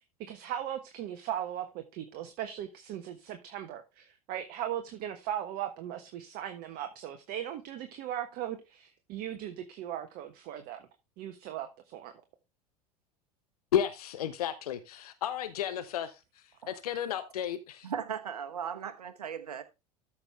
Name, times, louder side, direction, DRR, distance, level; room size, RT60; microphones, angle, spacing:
voice 1, 0.2-10.9 11.2-12.1, right 11 dB, 50° right, 1.3 m, -38 dB
voice 2, 13.7-17.9, left 10 dB, 75° left, 0.9 m, -33 dB
voice 3, 17.8-19.6, right 8 dB, 80° right, 1.3 m, -37 dB
13.5 x 6.0 x 3.5 m
figure-of-eight pair, 80°, 20 cm